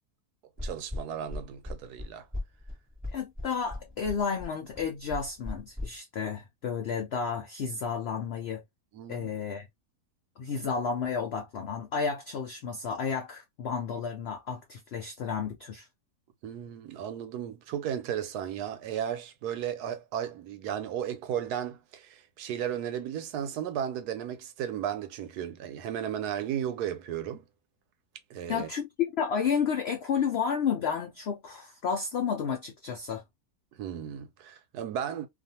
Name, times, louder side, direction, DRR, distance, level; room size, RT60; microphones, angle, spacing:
sound 1, 0.6-5.9, left 2 dB, 5° right, 1.1 m, -37 dB
voice 1, 0.6-2.3 8.9-9.3 16.4-27.5 28.3-28.7 33.7-35.3, right 9 dB, 90° right, 1.2 m, -34 dB
voice 2, 3.1-8.6 9.1-9.7 10.4-15.9 28.5-33.2, left 6 dB, 70° left, 0.6 m, -31 dB
2.5 x 2.5 x 2.6 m
omnidirectional pair, 1.6 m